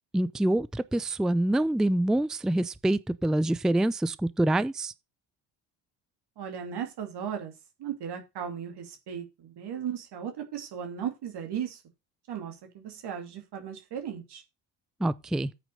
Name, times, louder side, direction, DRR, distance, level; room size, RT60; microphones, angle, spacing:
voice 1, 0.1-4.9 15.0-15.5, right 1 dB, ahead, 0.5 m, -26 dB
voice 2, 6.4-7.5 7.8-11.8 12.3-14.4, right 8 dB, 50° right, 2.5 m, -36 dB
9.1 x 6.0 x 6.4 m
figure-of-eight pair, 50°, 49 cm